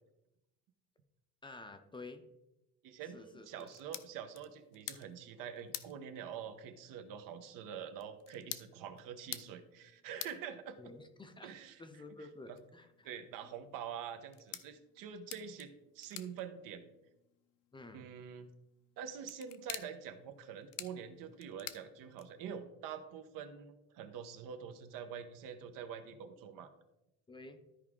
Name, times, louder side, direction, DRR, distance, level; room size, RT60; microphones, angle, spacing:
voice 1, 1.4-2.2 3.1-3.7 10.8-11.5 11.8-13.1 17.7-18.1 27.3-27.6, left 3 dB, 15° left, 7 dB, 0.6 m, -51 dB
voice 2, 2.8-10.8 11.4-11.8 12.5-12.6 13.0-16.9 17.9-18.5 19.0-26.7, right 8 dB, 75° right, 8 dB, 1.1 m, -46 dB
sound 1, 3.5-22.6, left 13 dB, 75° left, 0.7 m, -51 dB
13.0 x 4.8 x 3.7 m, 0.92 s
cardioid pair, 150°, 33 cm